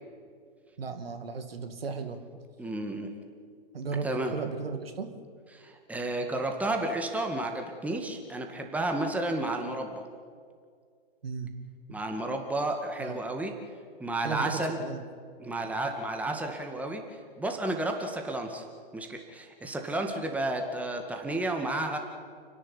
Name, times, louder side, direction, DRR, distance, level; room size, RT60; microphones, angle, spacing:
voice 1, 0.8-2.2 3.7-5.1 11.2-11.5 13.0-13.2 14.2-15.0, right 5 dB, 70° right, 7 dB, 2.4 m, -35 dB
voice 2, 2.6-3.1 4.0-4.3 5.5-10.0 11.9-13.5 14.0-14.8 15.4-18.7 18.9-22.0, right 2 dB, 5° right, 3 dB, 2.1 m, -32 dB
29.0 x 11.0 x 9.8 m, 2.1 s
figure-of-eight pair, 120°, 30 cm